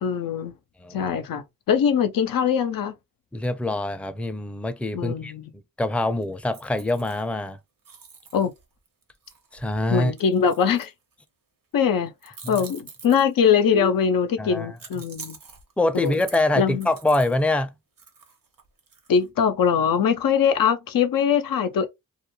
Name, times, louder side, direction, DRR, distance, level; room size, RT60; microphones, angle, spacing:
voice 1, 0.0-0.5 0.9-2.9 4.9-5.5 8.3-8.5 9.9-10.9 11.7-15.4 15.9-16.2 16.6-16.9 19.1-21.9, left 7 dB, 90° left, 0.5 m, -22 dB
voice 2, 3.3-5.3 5.8-7.6 9.5-10.1 12.4-12.6 14.4-14.7 15.8-17.7, left 2 dB, 5° left, 0.4 m, -24 dB
sound 1, 6.2-7.5 7.8-11.3 12.2-13.6 14.8-17.4 18.0-19.3, right 5 dB, 75° right, 0.9 m, -46 dB
2.4 x 2.2 x 3.0 m
cardioid pair, 45°, 33 cm